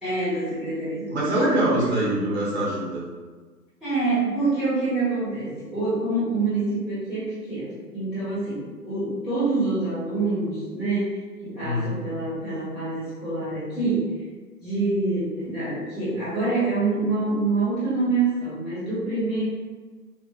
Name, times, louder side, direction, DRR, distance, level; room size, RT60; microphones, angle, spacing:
voice 1, 0.0-1.6 3.8-14.1 14.6-19.4, right 3 dB, ahead, -17 dB, 1.2 m, -26 dB
voice 2, 1.1-3.0 11.6-11.9, right 1 dB, 40° right, -5 dB, 1.2 m, -24 dB
4.4 x 2.5 x 2.3 m, 1.4 s
hypercardioid pair, 150°, 49 cm